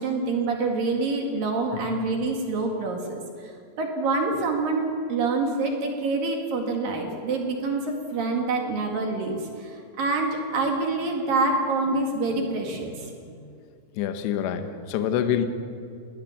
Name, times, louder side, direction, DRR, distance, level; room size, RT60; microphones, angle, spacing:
voice 1, 0.0-13.1, right 3 dB, 55° right, 2 dB, 3.1 m, -26 dB
voice 2, 14.0-15.5, left 9 dB, 70° left, 8 dB, 3.1 m, -26 dB
20.0 x 19.0 x 7.2 m, 2.4 s
omnidirectional pair, 5.5 m